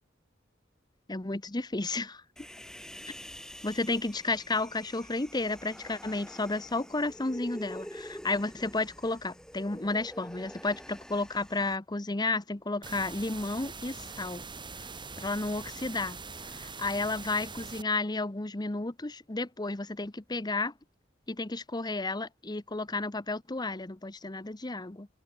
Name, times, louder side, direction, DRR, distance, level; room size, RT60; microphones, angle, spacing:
voice 1, 1.1-2.2 3.6-14.4 15.2-16.2 16.5-20.7 21.3-25.1, left 2 dB, 20° left, 1.0 m, -32 dB
Human voice, 2.4-11.8, equal, 5° left, 7.1 m, -47 dB
sound 1, 12.8-17.8, right 4 dB, 25° right, 4.0 m, -43 dB
head